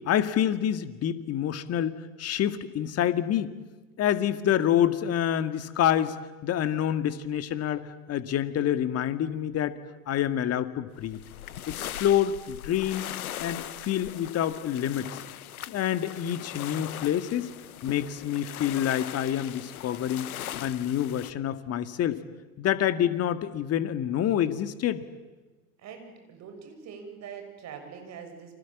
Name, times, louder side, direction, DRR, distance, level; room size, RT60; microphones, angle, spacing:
voice 1, 0.1-3.5 4.0-9.7 10.1-11.2 11.7-13.1 13.4-15.1 15.7-17.5 17.8-20.3 20.6-22.2 22.6-25.0, left 10 dB, 35° left, 11 dB, 2.0 m, -27 dB
sound 1, 11.0-21.3, left 12 dB, 75° left, 1.0 m, -40 dB
voice 2, 25.8-28.6, right 6 dB, 40° right, 5 dB, 7.0 m, -43 dB
29.5 x 25.5 x 7.5 m, 1.2 s
hypercardioid pair, 90°, 43 cm